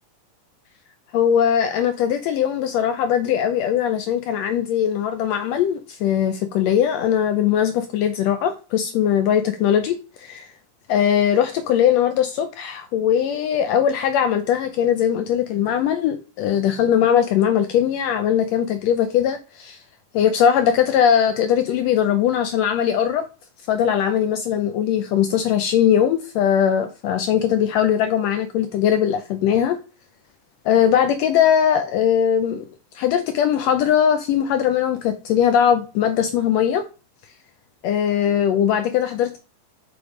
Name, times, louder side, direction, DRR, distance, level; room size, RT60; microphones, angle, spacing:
voice 1, 1.1-10.5 10.9-19.8 20.1-23.3 23.7-29.8 30.6-32.7 32.9-36.8 37.8-39.4, left 9 dB, 80° left, 1.5 m, -20 dB
6.0 x 3.4 x 4.8 m
omnidirectional pair, 3.5 m